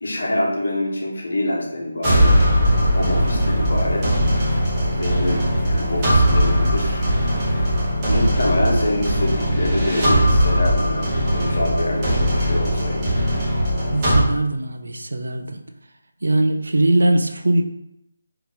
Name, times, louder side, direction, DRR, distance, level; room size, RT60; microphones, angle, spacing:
voice 1, 0.0-2.4 2.9-4.2 5.0-7.0 8.0-13.2, left 1 dB, 75° left, -1 dB, 0.9 m, -25 dB
sound 1, 2.0-14.2, equal, 20° right, 0.9 m, -19 dB
sound 2, 2.3-7.9, right 2 dB, 45° right, 1.0 m, -31 dB
voice 2, 13.9-15.6 16.2-17.6, right 1 dB, 80° right, 6 dB, 0.4 m, -20 dB
2.8 x 2.5 x 3.6 m, 0.82 s
figure-of-eight pair, 170°, 0 cm